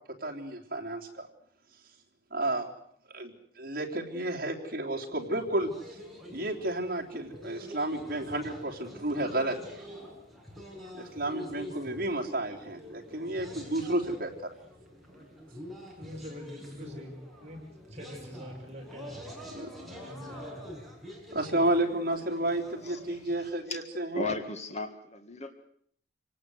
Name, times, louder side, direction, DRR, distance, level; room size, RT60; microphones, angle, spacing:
voice 1, 0.2-1.3 2.3-2.7 3.1-5.7 6.3-9.8 10.9-14.5 19.5-19.7 21.3-24.3, right 1 dB, 55° right, 0 dB, 3.6 m, -31 dB
sound 1, 5.1-23.5, left 1 dB, ahead, 6.5 m, -46 dB
voice 2, 10.8-11.1 11.4-11.5 12.5-12.6 12.9-13.0 16.0-17.6 17.9-19.2 20.0-20.7, equal, 40° right, 1 dB, 6.0 m, -45 dB
voice 3, 22.8-25.5, left 3 dB, 40° left, 6 dB, 1.8 m, -37 dB
27.0 x 18.5 x 8.0 m, 0.65 s
head